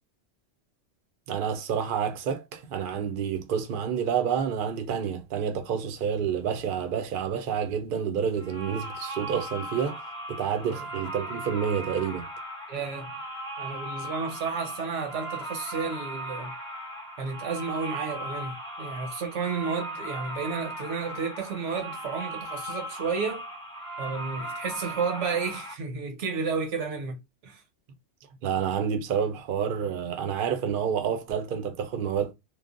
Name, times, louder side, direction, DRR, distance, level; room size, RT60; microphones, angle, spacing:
voice 1, 1.3-10.0 10.3-12.3 28.4-32.3, right 7 dB, 60° right, 0.6 m, -29 dB
sound 1, 8.4-25.7, right 1 dB, 5° left, 0.5 m, -38 dB
voice 2, 12.7-13.1 13.6-16.5 17.2-23.5 24.0-27.2 27.4-27.6, right 5 dB, 80° right, 1.1 m, -32 dB
3.0 x 2.1 x 2.5 m
omnidirectional pair, 1.2 m